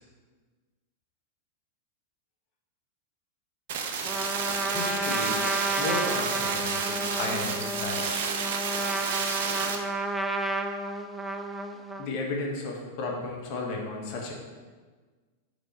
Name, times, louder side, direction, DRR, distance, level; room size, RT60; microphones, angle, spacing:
sound 1, 3.7-9.8, right 5 dB, 60° right, 0.7 m, -30 dB
Trumpet, 4.0-12.2, right 2 dB, 5° right, 0.4 m, -32 dB
voice 1, 4.6-5.4 5.8-8.3 12.0-14.3, left 3 dB, 50° left, 0 dB, 1.3 m, -34 dB
4.8 x 4.8 x 4.2 m, 1.4 s
figure-of-eight pair, 95°, 0 cm